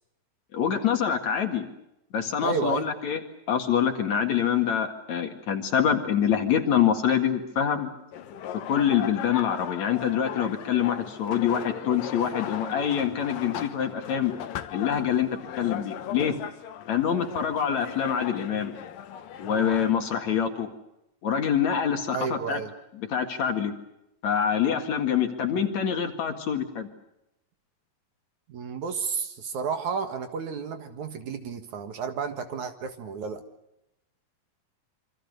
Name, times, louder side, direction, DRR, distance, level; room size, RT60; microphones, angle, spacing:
voice 1, 0.5-1.7 2.1-3.2 3.5-7.9 8.7-14.3 14.7-16.3 16.9-18.7 19.4-20.7 21.2-22.6 23.0-23.7 24.2-26.9, left 8 dB, 55° left, 5 dB, 3.0 m, -25 dB
voice 2, 2.4-2.9 22.1-22.7 28.5-33.4, right 5 dB, 60° right, 7 dB, 2.8 m, -31 dB
sound 1, 8.1-19.9, left 10 dB, 70° left, 2.9 m, -38 dB
27.0 x 25.5 x 6.8 m, 0.86 s
omnidirectional pair, 4.2 m